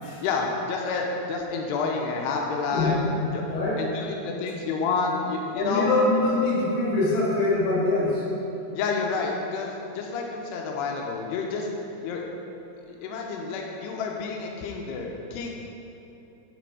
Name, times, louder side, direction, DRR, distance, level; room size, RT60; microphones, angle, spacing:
voice 1, 0.2-3.0 3.3-3.4 3.8-5.9 8.7-11.7 12.0-12.2 13.0-15.5, left 4 dB, 90° left, 0 dB, 2.4 m, -29 dB
voice 2, 2.7-3.8 5.6-8.3, left 2 dB, 60° left, -7 dB, 3.5 m, -24 dB
10.0 x 5.2 x 4.8 m, 2.9 s
omnidirectional pair, 5.5 m